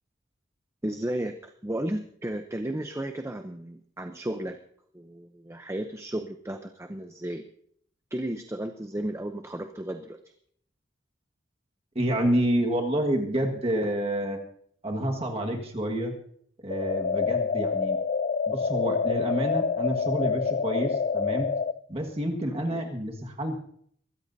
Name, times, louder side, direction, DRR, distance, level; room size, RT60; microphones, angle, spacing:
voice 1, 0.8-4.6 4.9-7.4 8.1-10.2 22.5-22.8, right 1 dB, 15° right, 6 dB, 0.7 m, -34 dB
voice 2, 11.9-14.4 14.8-16.1 16.6-18.0 18.5-21.5 21.9-23.6, right 1 dB, 30° right, 2 dB, 1.6 m, -28 dB
sound 1, 16.7-21.7, left 5 dB, 40° left, 0.4 m, -27 dB
23.5 x 13.5 x 2.7 m, 0.64 s
head